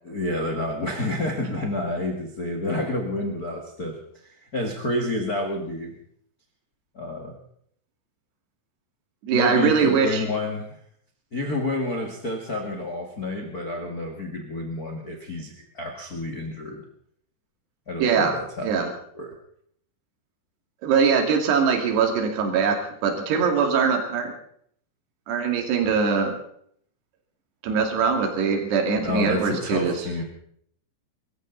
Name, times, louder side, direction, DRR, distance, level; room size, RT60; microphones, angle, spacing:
voice 1, 0.0-4.0 4.2-5.9 6.9-7.3 9.3-10.7 11.3-16.8 17.9-18.7 19.1-19.3 28.9-30.2, left 2 dB, 80° left, 2 dB, 0.8 m, -29 dB
voice 2, 9.2-10.3 18.0-18.9 20.8-24.3 25.3-26.3 27.6-30.1, right 6 dB, 60° right, 4 dB, 4.3 m, -22 dB
25.0 x 14.5 x 4.0 m, 0.65 s
omnidirectional pair, 5.6 m